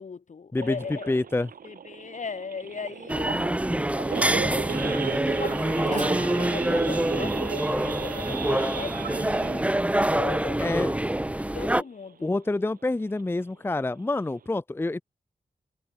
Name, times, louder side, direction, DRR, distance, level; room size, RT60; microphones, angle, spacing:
voice 1, 0.0-1.2 1.6-3.5 4.2-5.0 5.4-11.0 11.5-12.4, left 5 dB, 60° left, 1.5 m, -38 dB
voice 2, 0.5-1.5 10.6-10.9 11.7-11.8 12.2-15.0, left 2 dB, 15° left, 0.5 m, -27 dB
Idling / Accelerating revving vroom / Sawing, 0.6-11.7 12.1-12.3 12.5-12.6 13.1-13.4 13.8-13.9 14.1-14.5, right 7 dB, 90° right, 1.1 m, -36 dB
sound 1, 3.1-11.8, right 1 dB, 10° right, 1.0 m, -26 dB
Guitar, 5.8-9.6, right 5 dB, 60° right, 1.2 m, -42 dB
wide cardioid pair, 85°, 14 cm